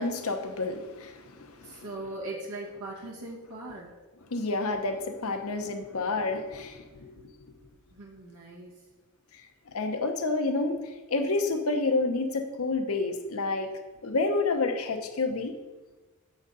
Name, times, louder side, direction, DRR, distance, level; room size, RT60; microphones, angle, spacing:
voice 1, 0.0-1.8 4.3-7.1 9.7-13.7 14.0-15.5, left 3 dB, 70° left, 5 dB, 0.8 m, -29 dB
voice 2, 1.6-3.9 7.9-8.8, right 2 dB, 85° right, -4 dB, 1.4 m, -40 dB
7.3 x 4.0 x 5.3 m, 1.2 s
head